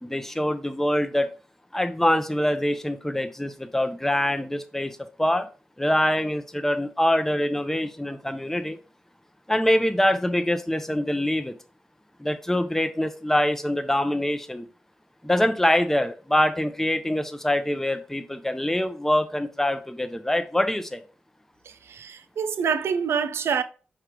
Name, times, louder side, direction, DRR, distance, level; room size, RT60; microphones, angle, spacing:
voice 1, 0.0-1.3 1.7-5.5 5.8-8.8 9.5-11.5 12.2-14.6 15.2-21.0, left 1 dB, 10° left, 0.6 m, -24 dB
voice 2, 21.6-23.6, right 6 dB, 80° right, 0.4 m, -26 dB
4.6 x 2.4 x 4.6 m
supercardioid pair, 40°, 4 cm